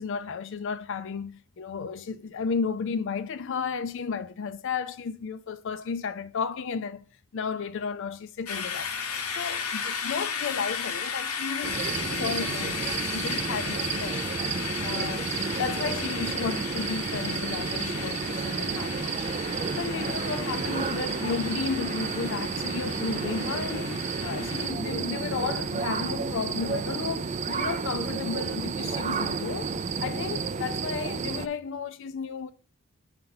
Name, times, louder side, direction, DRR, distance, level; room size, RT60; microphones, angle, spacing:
voice 1, 0.0-7.1 7.3-8.9 9.3-14.3 14.8-15.3 15.6-19.3 19.7-29.7 30.0-32.5, left 5 dB, 60° left, 0.4 m, -33 dB
sound 1, 8.5-24.7, left 6 dB, 90° left, 0.9 m, -35 dB
sound 2, 11.6-31.5, right 5 dB, 30° right, 0.3 m, -31 dB
7.7 x 4.4 x 4.0 m
head